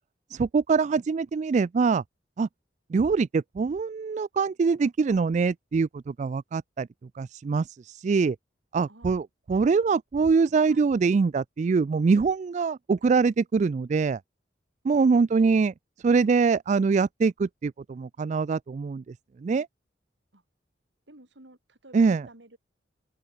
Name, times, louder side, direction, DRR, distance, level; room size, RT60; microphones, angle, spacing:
voice 1, 0.3-2.0 2.4-2.5 2.9-6.9 7.1-8.4 8.7-14.2 14.8-15.7 16.0-19.1 19.4-19.7 21.9-22.3, right 4 dB, 40° right, 0.3 m, -24 dB
voice 2, 8.9-9.2 10.6-10.9 15.4-15.6 20.3-20.4 21.1-22.6, right 1 dB, 85° right, 4.4 m, -51 dB
head